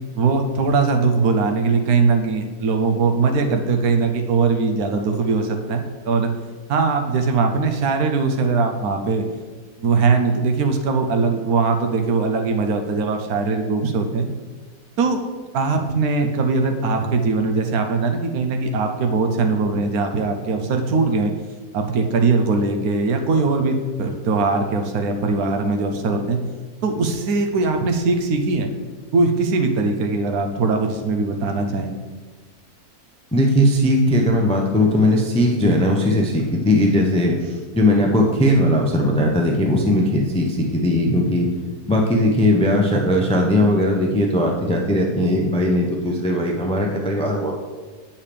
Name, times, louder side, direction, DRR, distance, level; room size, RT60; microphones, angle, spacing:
voice 1, 0.1-6.3 6.7-9.2 9.8-14.3 15.0-15.2 15.5-21.3 21.7-26.4 26.8-28.7 29.1-31.9, right 4 dB, 80° right, 5 dB, 1.2 m, -20 dB
voice 2, 33.3-37.5 37.7-41.5 41.9-47.5, left 1 dB, 10° left, 1 dB, 0.3 m, -18 dB
8.6 x 5.5 x 3.4 m, 1.4 s
omnidirectional pair, 1.6 m